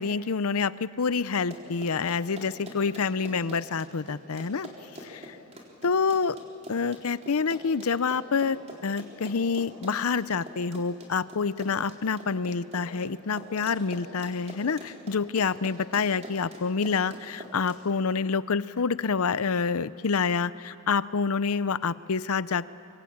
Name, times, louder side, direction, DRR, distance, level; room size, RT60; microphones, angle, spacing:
voice 1, 0.0-4.7 5.0-5.4 5.8-6.4 6.7-22.7, left 5 dB, 70° left, 16 dB, 0.6 m, -27 dB
Run, 1.3-17.8, right 1 dB, 30° right, 3.9 m, -44 dB
25.0 x 24.0 x 8.7 m, 2.5 s
head